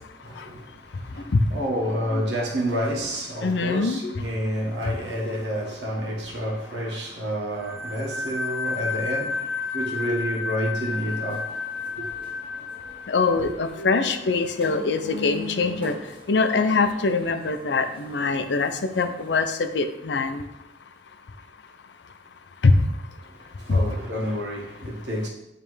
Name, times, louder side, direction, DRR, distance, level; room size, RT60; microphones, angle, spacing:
voice 1, 0.2-11.5 11.9-12.1 13.3-13.5 23.3-25.3, equal, 75° right, 1.4 m, -29 dB
voice 2, 3.4-4.2 13.1-15.9 16.3-20.4 22.6-22.8 23.7-23.8, left 3 dB, 75° left, 0.5 m, -23 dB
sound 1, 7.6-14.1, left 4 dB, 55° right, 0.7 m, -32 dB
sound 2, 10.8-19.4, left 2 dB, 30° right, 1.2 m, -42 dB
9.2 x 3.3 x 3.2 m
head